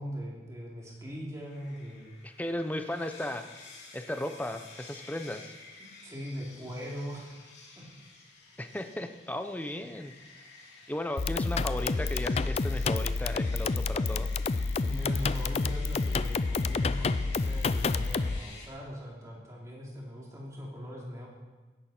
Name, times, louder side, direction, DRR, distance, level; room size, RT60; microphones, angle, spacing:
voice 1, 0.0-2.1 5.8-7.4 7.8-7.9 14.8-21.3, equal, 20° right, -4 dB, 3.1 m, -40 dB
sound 1, 1.3-18.7, left 3 dB, 85° left, 2.8 m, -51 dB
voice 2, 2.2-3.4 3.9-5.5 8.6-10.1 10.9-14.3, left 1 dB, 10° left, 7 dB, 0.7 m, -35 dB
sound 2, 11.2-18.4, left 3 dB, 35° left, 0.4 m, -29 dB
17.0 x 11.0 x 4.4 m, 1.2 s
head